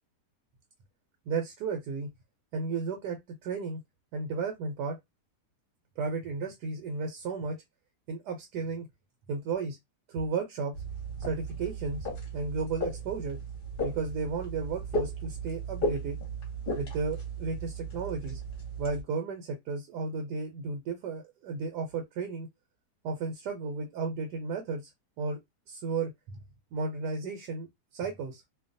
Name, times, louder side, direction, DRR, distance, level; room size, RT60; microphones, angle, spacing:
voice 1, 1.3-2.1 2.5-3.8 4.1-5.0 6.0-7.6 8.1-8.9 9.3-9.8 10.1-10.7 11.2-12.1 12.3-13.4 13.8-16.2 16.7-18.4 18.8-22.5 23.0-24.9 25.2-25.4 25.7-26.4 26.7-27.7 27.9-28.4, right 4 dB, 85° right, 1.2 m, -33 dB
sound 1, 10.7-19.0, right 1 dB, 40° left, 1.0 m, -36 dB
2.8 x 2.2 x 2.5 m
omnidirectional pair, 1.7 m